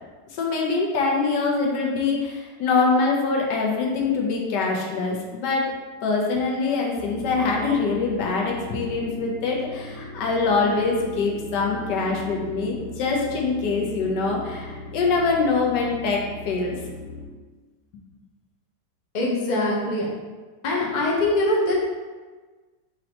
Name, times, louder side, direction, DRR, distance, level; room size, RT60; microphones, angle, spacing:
voice 1, 0.3-5.6 6.0-16.8, left 4 dB, 75° left, -1 dB, 1.4 m, -24 dB
sound 1, 7.0-17.3, left 2 dB, 60° right, 0.9 m, -39 dB
voice 2, 19.1-20.1 20.6-21.7, left 1 dB, 50° left, -3 dB, 0.5 m, -23 dB
5.1 x 3.1 x 2.9 m, 1.3 s
omnidirectional pair, 1.9 m